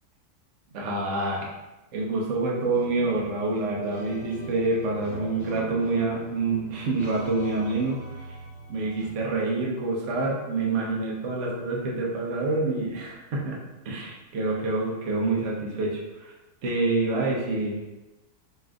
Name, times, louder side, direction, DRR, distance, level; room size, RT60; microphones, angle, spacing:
voice 1, 0.7-1.4 1.9-8.3 8.7-13.6 13.8-16.3 16.6-17.8, right 3 dB, 55° right, -3 dB, 0.9 m, -27 dB
sound 1, 2.7-9.1, right 1 dB, 25° left, 0.6 m, -41 dB
4.2 x 3.7 x 2.3 m, 1.0 s
omnidirectional pair, 1.9 m